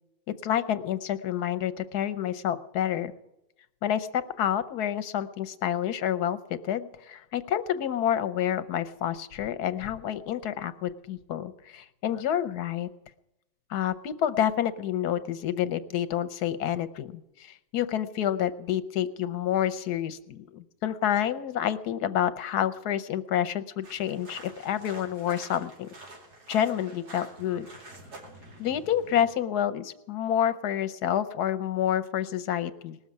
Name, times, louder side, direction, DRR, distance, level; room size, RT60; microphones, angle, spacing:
voice 1, 0.3-3.1 3.8-6.4 6.6-12.9 13.7-25.9 26.5-27.7 28.6-33.0, left 10 dB, 85° left, 12 dB, 1.4 m, -28 dB
sound 1, 23.8-29.3, right 2 dB, 90° right, 3.2 m, -47 dB
19.5 x 7.2 x 9.5 m, 0.91 s
omnidirectional pair, 1.7 m